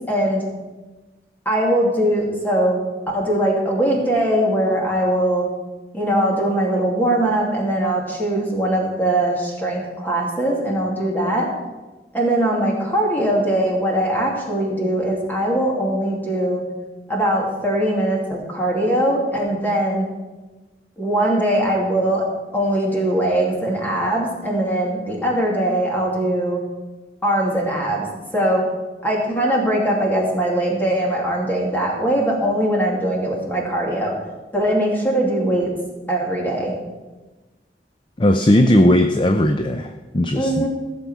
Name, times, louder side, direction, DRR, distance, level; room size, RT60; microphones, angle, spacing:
voice 1, 0.1-0.5 1.4-2.9 3.1-5.5 5.9-11.5 12.1-16.6 17.1-20.1 21.0-22.3 22.5-26.6 27.2-28.1 28.3-28.6 29.0-34.1 34.5-35.7 36.1-36.8 40.3-40.7, right 1 dB, 10° left, -2 dB, 2.6 m, -21 dB
voice 2, 38.2-40.7, left 1 dB, 25° left, 7 dB, 0.5 m, -17 dB
15.5 x 7.0 x 6.1 m, 1.2 s
head